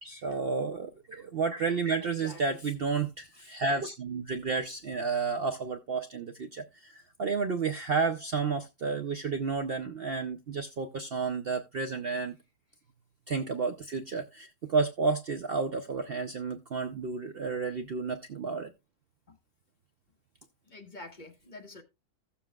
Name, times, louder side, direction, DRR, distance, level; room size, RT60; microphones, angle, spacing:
voice 1, 0.0-12.4 13.3-18.7, right 4 dB, 85° right, 0.5 m, -31 dB
voice 2, 2.0-2.6 19.3-19.4 20.7-21.8, left 2 dB, 30° left, 1.3 m, -47 dB
16.0 x 7.0 x 2.3 m
omnidirectional pair, 1.8 m